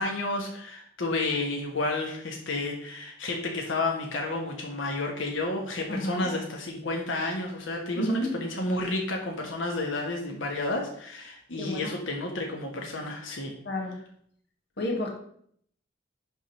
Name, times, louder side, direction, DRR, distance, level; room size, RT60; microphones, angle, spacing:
voice 1, 0.0-13.5, left 2 dB, 90° left, 1 dB, 1.3 m, -31 dB
voice 2, 5.9-6.3 7.9-8.3 11.5-11.9 13.6-13.9 14.8-15.1, equal, 60° left, 0 dB, 1.6 m, -30 dB
11.0 x 3.7 x 4.3 m, 0.65 s
head